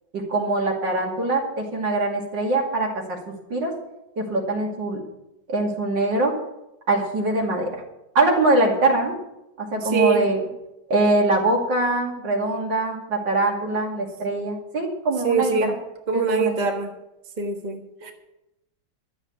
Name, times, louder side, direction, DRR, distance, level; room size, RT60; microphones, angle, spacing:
voice 1, 0.1-3.2 3.5-3.7 4.2-5.0 5.5-6.3 6.9-7.8 8.1-9.2 9.6-10.4 10.9-15.5 16.1-16.6, right 2 dB, 75° right, 0 dB, 3.1 m, -23 dB
voice 2, 9.7-10.3 15.2-15.7 16.1-16.9 17.4-18.1, right 5 dB, 25° right, 3 dB, 1.3 m, -23 dB
12.5 x 7.3 x 8.4 m, 0.91 s
omnidirectional pair, 2.0 m